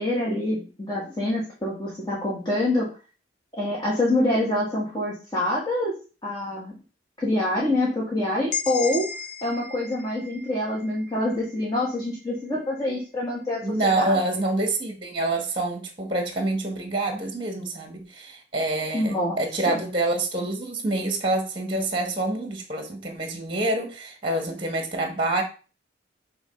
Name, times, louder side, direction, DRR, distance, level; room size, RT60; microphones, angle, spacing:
voice 1, 0.0-2.9 3.5-5.9 6.2-6.7 7.2-9.1 9.4-14.4 18.9-19.4 19.7-19.8, left 1 dB, 25° left, -5 dB, 1.9 m, -26 dB
sound 1, 8.5-12.3, left 6 dB, 50° left, 0.8 m, -35 dB
voice 2, 13.6-25.4, right 2 dB, 25° right, 5 dB, 1.4 m, -27 dB
7.0 x 3.2 x 5.8 m, 0.35 s
head